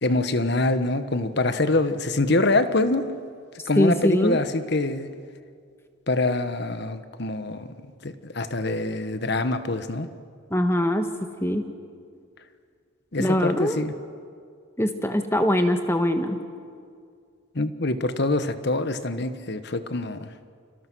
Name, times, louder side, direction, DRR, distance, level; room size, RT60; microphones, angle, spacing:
voice 1, 0.0-3.0 3.7-5.1 6.1-7.7 8.0-10.1 13.1-13.9 17.5-20.3, left 2 dB, 50° left, 11 dB, 1.2 m, -25 dB
voice 2, 3.8-4.4 10.5-11.1 11.4-11.6 13.2-13.8 14.8-16.4, left 1 dB, 10° left, 7 dB, 1.5 m, -22 dB
29.0 x 26.5 x 6.3 m, 2.2 s
head